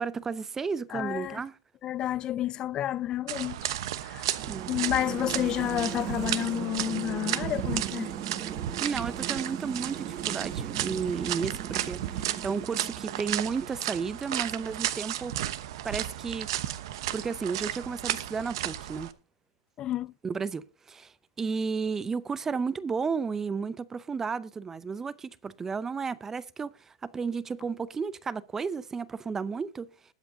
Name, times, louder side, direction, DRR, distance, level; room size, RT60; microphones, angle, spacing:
voice 1, 0.0-1.6 4.4-4.7 8.8-15.3 15.8-16.5 17.1-19.1 20.2-29.9, right 5 dB, 15° right, 0.6 m, -33 dB
voice 2, 0.9-1.4 1.8-3.8 4.0-4.4 4.7-8.1 19.8-20.1, left 12 dB, 30° left, 0.5 m, -30 dB
sound 1, 3.3-19.1, right 13 dB, 60° right, 1.0 m, -34 dB
sound 2, 4.4-13.7, right 9 dB, 30° right, 1.7 m, -38 dB
20.5 x 7.8 x 2.7 m
hypercardioid pair, 130°, 3 cm